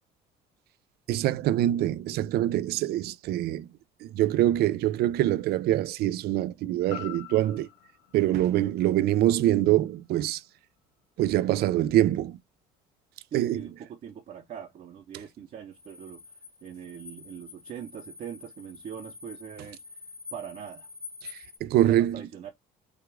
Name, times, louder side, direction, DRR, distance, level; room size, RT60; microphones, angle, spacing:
voice 1, 1.1-3.7 4.0-7.7 8.1-10.4 11.2-12.4 13.3-13.7 21.2-22.2, right 13 dB, 70° right, 0.4 m, -24 dB
sound 1, 6.9-11.0 11.4-11.5, left 11 dB, 75° left, 1.5 m, -47 dB
voice 2, 13.3-16.2 16.6-19.8 20.3-20.9 21.8-22.5, right 8 dB, 50° right, 0.8 m, -41 dB
sound 2, 15.7-21.6, left 4 dB, 15° left, 0.9 m, -47 dB
5.0 x 2.4 x 3.4 m
cardioid pair, 110°, 17 cm